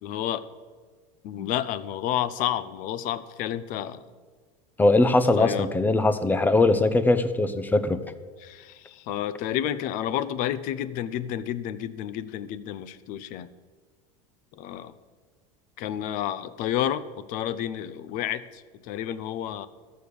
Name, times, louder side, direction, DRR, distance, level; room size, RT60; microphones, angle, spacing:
voice 1, 0.0-0.5 1.2-4.0 5.4-5.7 8.4-13.5 14.6-14.9 15.8-17.0 17.3-19.7, left 11 dB, 50° left, 15 dB, 0.7 m, -30 dB
voice 2, 4.8-8.0, left 2 dB, 10° left, 12 dB, 0.6 m, -21 dB
13.5 x 6.6 x 6.9 m, 1.5 s
supercardioid pair, 130°, 17 cm